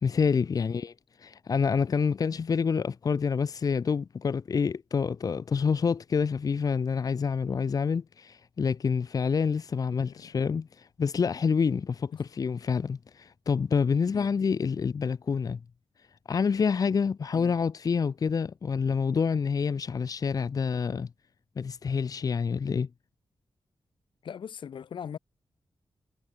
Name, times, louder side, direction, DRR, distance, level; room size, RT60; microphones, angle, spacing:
voice 1, 0.0-0.9 1.2-15.6 16.3-21.1 21.6-22.9, left 6 dB, 50° left, 1.1 m, -27 dB
voice 2, 10.0-10.4 12.1-12.2 14.1-14.3 17.3-17.5 24.2-25.2, left 8 dB, 80° left, 4.4 m, -41 dB
wide cardioid pair, 125°, 8 cm